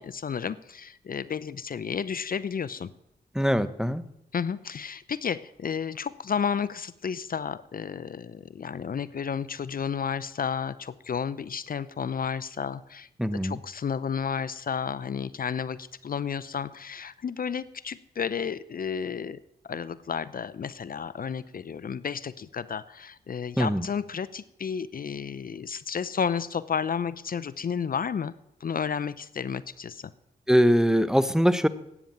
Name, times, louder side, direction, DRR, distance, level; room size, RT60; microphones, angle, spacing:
voice 1, 0.0-2.9 4.3-28.3 28.6-30.1, left 7 dB, 55° left, 17 dB, 0.6 m, -32 dB
voice 2, 3.3-4.0 13.2-13.6 23.6-23.9 30.5-31.7, equal, 5° right, 14 dB, 0.9 m, -22 dB
13.0 x 9.1 x 7.2 m, 0.83 s
cardioid pair, 50°, 18 cm